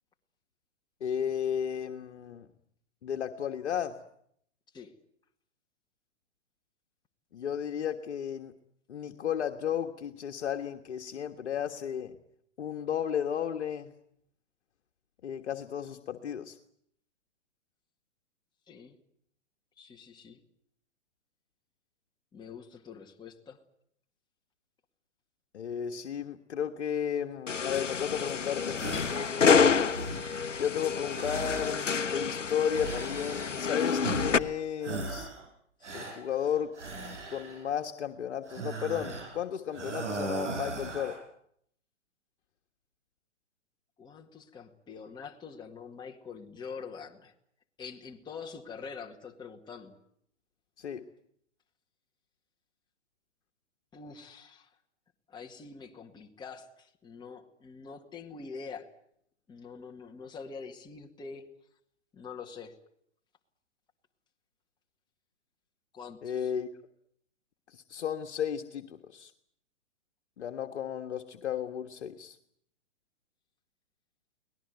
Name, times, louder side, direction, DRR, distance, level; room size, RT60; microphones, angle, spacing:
voice 1, 1.0-2.5 3.0-4.0 7.3-8.5 8.9-12.2 12.6-13.9 15.2-16.6 25.5-29.1 30.6-35.3 35.9-36.7 37.3-41.2 50.8-51.1 66.2-66.7 67.7-69.3 70.4-72.4, left 9 dB, 65° left, 6 dB, 1.6 m, -34 dB
voice 2, 19.8-20.4 22.3-23.6 35.8-35.9 44.0-47.3 47.8-50.0 53.9-54.7 55.3-58.9 59.5-61.5 62.1-62.8 65.9-66.5, left 5 dB, 10° left, 1 dB, 2.1 m, -45 dB
sound 1, 27.5-34.4, left 6 dB, 85° left, 1.0 m, -28 dB
sound 2, 28.7-29.3 29.7-30.5 31.1-32.2 32.7-33.7 34.0-34.5 34.8-35.5 35.8-37.7 38.4-39.4 39.7-41.2, right 3 dB, 75° right, 6.9 m, -38 dB
24.5 x 19.0 x 9.4 m, 0.70 s
figure-of-eight pair, 120°, 36 cm